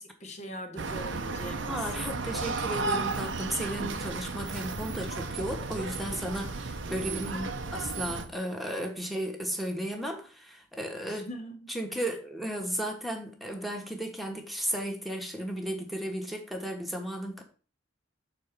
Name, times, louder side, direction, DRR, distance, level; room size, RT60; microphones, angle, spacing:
voice 1, 0.0-1.9 7.2-7.8 11.1-12.1, equal, 40° left, 1.5 m, -41 dB
sound 1, 0.8-8.3, right 3 dB, 85° right, 0.9 m, -34 dB
voice 2, 1.7-7.2 8.0-11.3 11.7-17.4, right 1 dB, ahead, 1.6 m, -34 dB
6.7 x 4.4 x 6.7 m
head